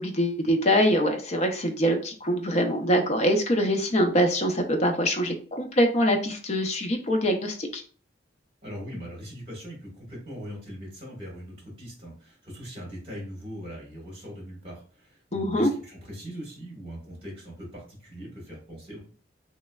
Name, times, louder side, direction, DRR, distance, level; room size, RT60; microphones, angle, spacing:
voice 1, 0.0-7.8 15.3-15.7, equal, 35° left, 4 dB, 0.4 m, -24 dB
voice 2, 8.6-19.0, equal, 30° right, -2 dB, 1.4 m, -40 dB
3.2 x 3.0 x 2.2 m, 0.42 s
head